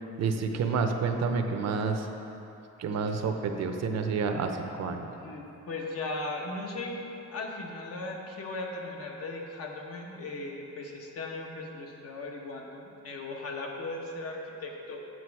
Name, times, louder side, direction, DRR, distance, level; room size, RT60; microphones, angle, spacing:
voice 1, 0.2-2.1 2.8-5.1, right 5 dB, 60° right, 5 dB, 0.7 m, -29 dB
voice 2, 5.2-15.0, left 2 dB, 55° left, 0 dB, 1.1 m, -38 dB
7.7 x 7.7 x 4.6 m, 2.8 s
cardioid pair, 150°, 29 cm